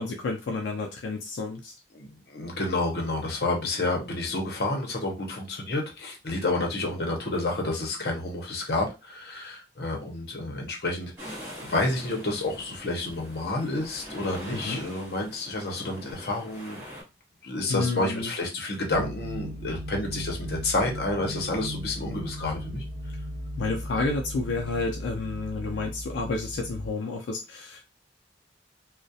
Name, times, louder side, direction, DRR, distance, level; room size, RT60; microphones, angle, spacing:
voice 1, 0.0-1.7 14.5-14.8 17.7-18.3 23.6-27.8, left 3 dB, 85° left, 2 dB, 0.4 m, -30 dB
voice 2, 1.9-16.8 17.4-22.8, left 2 dB, 60° left, 1 dB, 0.7 m, -30 dB
sound 1, 11.2-17.0, equal, 15° right, 0.9 m, -43 dB
sound 2, 18.9-26.9, equal, 65° right, 0.7 m, -37 dB
2.3 x 2.1 x 2.7 m, 0.27 s
head